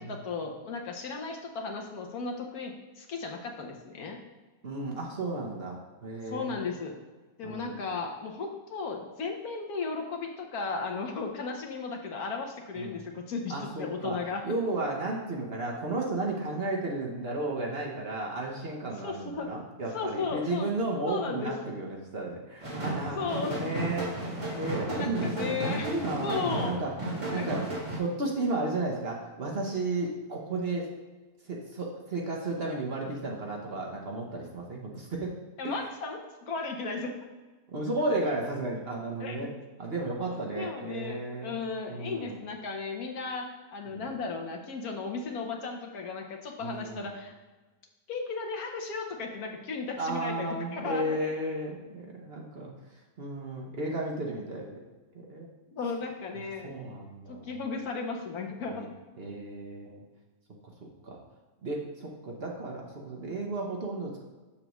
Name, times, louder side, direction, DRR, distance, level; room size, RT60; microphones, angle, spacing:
voice 1, 0.0-4.2 6.3-7.0 7.4-14.4 19.0-19.5 19.9-20.7 21.1-21.6 23.2-23.9 24.9-25.9 26.2-26.8 27.3-27.5 35.6-37.1 39.2-39.5 40.2-47.3 48.1-51.2 55.7-56.7 57.3-58.8, left 4 dB, 70° left, 2 dB, 1.4 m, -35 dB
voice 2, 4.6-6.7 7.4-7.8 12.7-13.0 13.5-14.2 14.4-24.1 24.6-26.9 27.3-30.9 31.4-35.3 35.6-35.8 37.7-39.5 39.8-41.6 41.9-42.4 43.9-44.1 46.6-47.1 50.0-52.7 53.2-54.7 55.1-55.5 56.6-57.5 58.6-58.9 59.2-60.0 61.0-61.2 61.6-64.2, right 2 dB, 45° right, -1 dB, 1.0 m, -33 dB
sound 1, 22.6-28.0, right 1 dB, 20° right, 1.7 m, -34 dB
7.0 x 6.6 x 3.1 m, 1.3 s
omnidirectional pair, 1.6 m